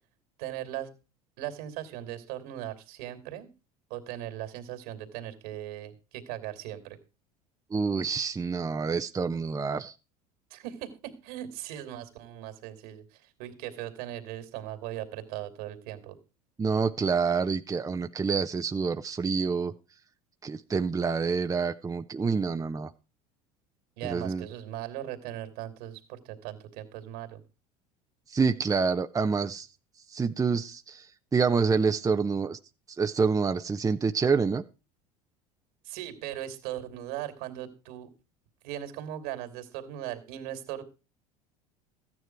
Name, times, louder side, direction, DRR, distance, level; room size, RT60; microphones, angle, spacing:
voice 1, 0.4-0.9 1.4-3.5 3.9-7.0 10.5-16.2 24.0-27.4 35.8-38.1 38.6-40.8, right 12 dB, 70° right, 8 dB, 2.9 m, -38 dB
voice 2, 7.7-9.9 16.6-19.7 20.4-22.9 24.0-24.5 28.3-29.7 30.1-31.1 31.3-32.6 33.0-34.6, right 5 dB, 20° right, 8 dB, 0.8 m, -27 dB
14.5 x 9.7 x 4.6 m, 0.31 s
hypercardioid pair, 80°, 19 cm